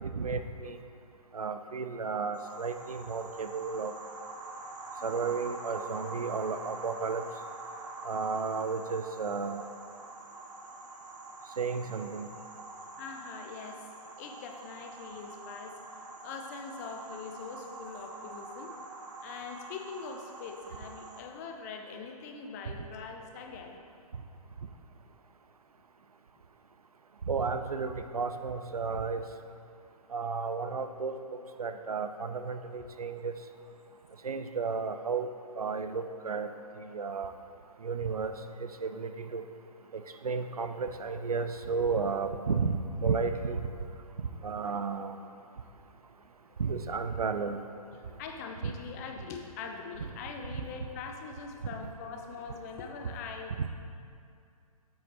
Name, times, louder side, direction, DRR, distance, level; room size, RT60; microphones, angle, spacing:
voice 1, 0.0-0.8 1.3-3.9 5.0-7.2 8.0-9.6 11.6-12.3 27.3-29.2 30.1-33.3 34.2-35.3 35.6-36.5 36.8-37.3 37.8-39.4 39.9-43.6 44.4-45.2 46.6-47.6 48.6-48.7 53.6-53.7, right 5 dB, 75° right, 9 dB, 0.6 m, -33 dB
sound 1, 2.3-21.2, right 2 dB, 55° right, 1.1 m, -45 dB
voice 2, 13.0-13.9 14.2-18.7 19.2-23.8 47.9-53.5, left 5 dB, 25° left, 3 dB, 0.6 m, -43 dB
8.0 x 6.6 x 4.0 m, 2.5 s
figure-of-eight pair, 130°, 19 cm